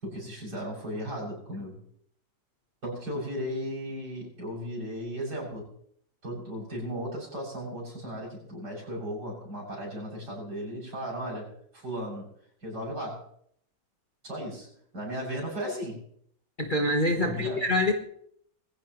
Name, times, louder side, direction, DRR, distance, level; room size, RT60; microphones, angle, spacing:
voice 1, 0.0-1.8 2.8-5.7 6.2-12.3 12.6-13.3 14.2-14.7 14.9-16.0 17.2-17.7, equal, 60° right, -3 dB, 7.8 m, -36 dB
voice 2, 16.6-17.9, left 1 dB, 30° left, 3 dB, 1.2 m, -25 dB
22.5 x 15.5 x 3.1 m, 0.66 s
omnidirectional pair, 2.0 m